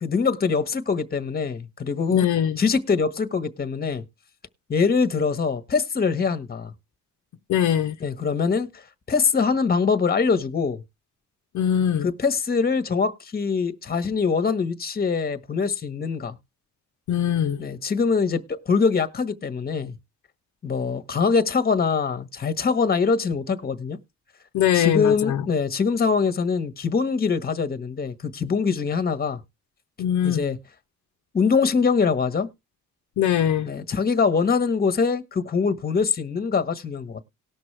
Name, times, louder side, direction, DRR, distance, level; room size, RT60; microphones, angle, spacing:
voice 1, 0.0-2.3 2.6-4.0 4.7-6.7 8.0-8.8 9.1-10.8 12.0-16.4 17.6-20.0 20.6-24.0 24.7-29.4 30.2-30.6 31.3-32.5 33.6-37.2, left 5 dB, 30° left, 1.2 m, -23 dB
voice 2, 2.1-2.6 7.5-7.9 11.5-12.1 17.1-17.6 24.5-25.4 30.0-30.4 33.2-33.7, left 9 dB, 70° left, 0.9 m, -22 dB
18.5 x 6.2 x 3.3 m
cardioid pair, 90°, 30 cm